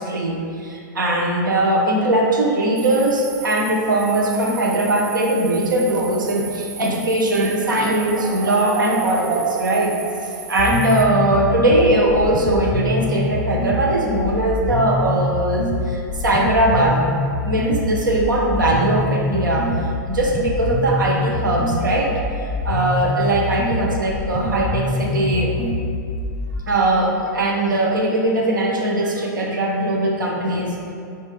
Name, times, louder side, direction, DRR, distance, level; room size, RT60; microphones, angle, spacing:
voice 1, 0.0-9.9 10.5-17.0 17.4-22.1 22.4-25.5 26.7-30.7, right 1 dB, 90° right, -1 dB, 0.9 m, -20 dB
sound 1, 2.8-11.0, right 5 dB, 40° right, 0.7 m, -31 dB
sound 2, 10.6-26.6, left 2 dB, 30° left, 0.6 m, -25 dB
6.3 x 4.3 x 3.7 m, 2.4 s
hypercardioid pair, 120°, 10 cm